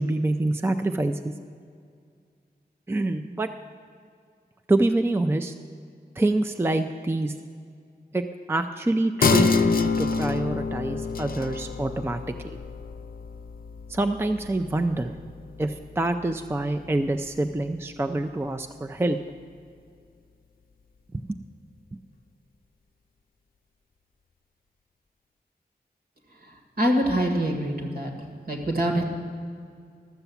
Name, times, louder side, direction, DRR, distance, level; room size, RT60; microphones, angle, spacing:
voice 1, 0.0-1.3 2.9-3.5 4.7-5.5 6.2-7.3 8.1-12.6 13.9-15.1 15.6-19.2, right 2 dB, 15° right, 7 dB, 0.4 m, -26 dB
sound 1, 9.2-16.2 16.6-16.7, left 4 dB, 60° left, 0.5 m, -27 dB
voice 2, 26.8-28.1 28.5-29.0, equal, 65° right, 2 dB, 1.8 m, -24 dB
13.0 x 6.9 x 7.0 m, 2.2 s
wide cardioid pair, 80°, 17 cm